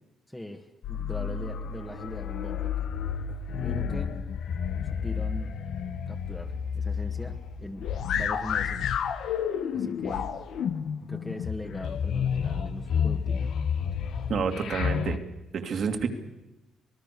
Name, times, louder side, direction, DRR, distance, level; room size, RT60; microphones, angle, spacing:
voice 1, 0.3-2.9 3.6-4.2 4.8-5.5 6.1-9.0 9.7-10.3 11.1-13.5, left 1 dB, 10° left, 3 dB, 1.8 m, -40 dB
sound 1, 0.8-15.2, left 7 dB, 70° left, 1.3 m, -30 dB
voice 2, 14.3-15.2 15.5-16.1, right 6 dB, 60° right, 6 dB, 2.7 m, -28 dB
26.0 x 19.0 x 6.9 m, 0.98 s
cardioid pair, 90°, 0 cm